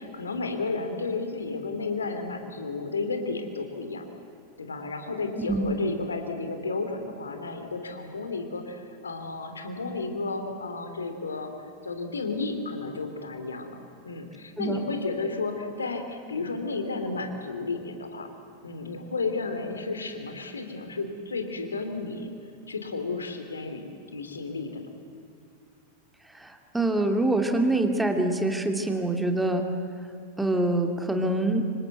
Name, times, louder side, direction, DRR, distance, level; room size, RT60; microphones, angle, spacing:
voice 1, 0.0-4.0 4.6-11.5 11.8-13.8 14.0-18.3 18.6-22.3 22.7-23.8 24.1-24.9, left 3 dB, 75° left, 6 dB, 3.0 m, -32 dB
voice 2, 26.3-29.7 30.4-31.6, right 2 dB, 5° right, 5 dB, 2.4 m, -25 dB
26.5 x 24.5 x 8.1 m, 2.4 s
figure-of-eight pair, 90°, 0 cm